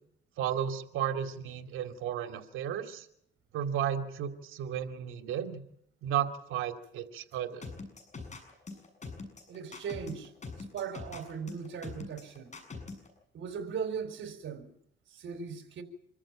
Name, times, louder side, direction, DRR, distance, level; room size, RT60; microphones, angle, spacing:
voice 1, 0.4-3.1 3.5-5.6 6.0-7.7, right 9 dB, 90° right, 2.5 m, -33 dB
sound 1, 7.6-13.1, left 3 dB, 35° left, 7.1 m, -43 dB
voice 2, 9.5-10.3 10.6-12.5 13.3-14.7 15.1-15.8, right 6 dB, 70° right, 4.2 m, -38 dB
26.5 x 14.0 x 9.0 m
cardioid pair, 90°, 20 cm